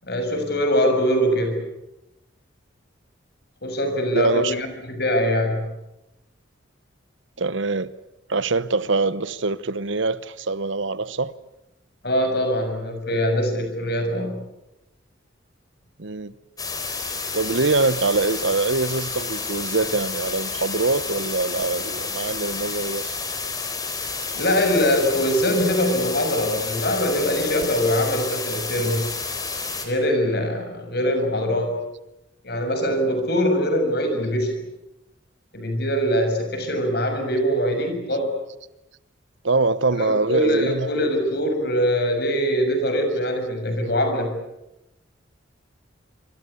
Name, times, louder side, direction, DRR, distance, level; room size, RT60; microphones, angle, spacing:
voice 1, 0.0-1.6 3.6-5.7 12.0-14.4 24.3-29.1 29.8-31.8 32.4-34.5 35.5-38.3 40.0-44.3, equal, 55° left, 6.7 m, -23 dB
voice 2, 4.1-4.5 7.4-7.9 8.3-11.3 16.0-16.3 17.3-23.1 39.4-40.9, right 3 dB, 70° right, 1.0 m, -23 dB
sound 1, 16.6-29.9, left 4 dB, 20° left, 4.1 m, -30 dB
26.5 x 24.5 x 8.4 m
head